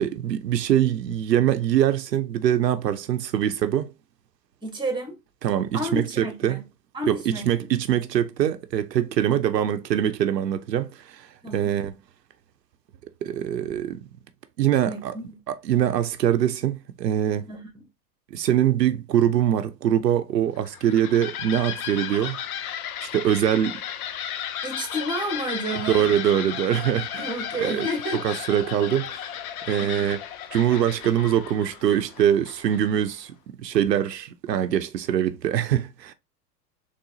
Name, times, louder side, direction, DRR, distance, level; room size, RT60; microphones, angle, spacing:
voice 1, 0.0-3.9 5.4-6.6 7.1-11.9 13.2-14.0 14.6-15.1 15.5-17.5 18.3-22.4 23.0-23.8 25.9-27.3 27.6-27.9 28.2-29.3 29.7-30.2 30.5-36.1, right 10 dB, 90° right, 0.6 m, -23 dB
voice 2, 4.6-5.2 5.7-6.6 6.9-7.7 11.4-11.8 14.8-15.4 17.5-17.9 24.6-26.1 27.2-28.5 29.8-30.0, right 1 dB, 10° right, 1.6 m, -31 dB
sound 1, 20.6-33.1, left 9 dB, 65° left, 0.7 m, -34 dB
3.8 x 3.3 x 2.7 m
hypercardioid pair, 95°, 48 cm